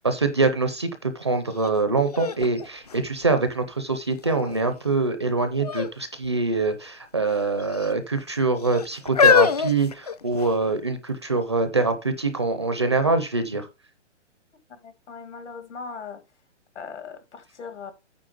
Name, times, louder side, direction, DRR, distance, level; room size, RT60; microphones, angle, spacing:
voice 1, 0.0-13.7, right 3 dB, 25° right, 0.5 m, -24 dB
sound 1, 1.6-1.7 2.1-3.7 4.3-4.8 5.6-6.0 6.2-6.4 7.3-7.9 8.6-10.7 11.4-11.5, left 6 dB, 35° left, 0.6 m, -24 dB
voice 2, 14.7-16.2 16.8-17.9, left 5 dB, 70° left, 2.1 m, -39 dB
9.1 x 4.1 x 6.4 m
hypercardioid pair, 175°, 36 cm